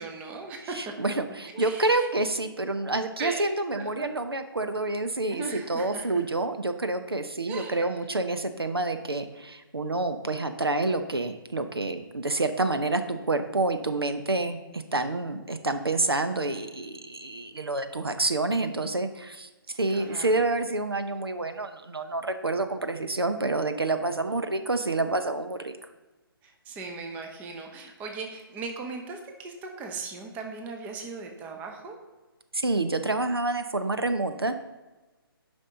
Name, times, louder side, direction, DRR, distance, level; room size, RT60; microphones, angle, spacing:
voice 1, 0.0-0.9 1.5-2.1 2.9-3.5 3.7-4.2 4.9-6.2 7.5-8.2 19.9-20.5 26.4-32.0, right 4 dB, 10° right, 3 dB, 0.7 m, -38 dB
voice 2, 0.8-19.5 19.8-25.7 32.5-34.6, right 2 dB, 80° right, 8 dB, 0.7 m, -28 dB
9.9 x 5.4 x 3.7 m, 1.2 s
figure-of-eight pair, 140°, 13 cm